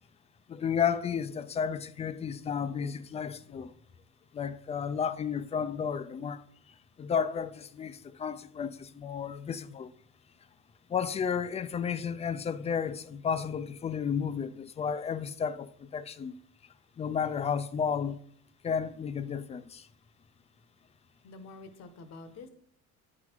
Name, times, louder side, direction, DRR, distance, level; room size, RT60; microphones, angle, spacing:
voice 1, 0.5-3.7 4.3-6.4 7.0-9.9 10.9-16.4 17.0-18.2 18.6-19.9, left 7 dB, 20° left, 0.4 m, -32 dB
voice 2, 21.2-22.5, left 3 dB, 55° left, 1.1 m, -47 dB
8.4 x 4.0 x 4.5 m
cardioid pair, 115°, 31 cm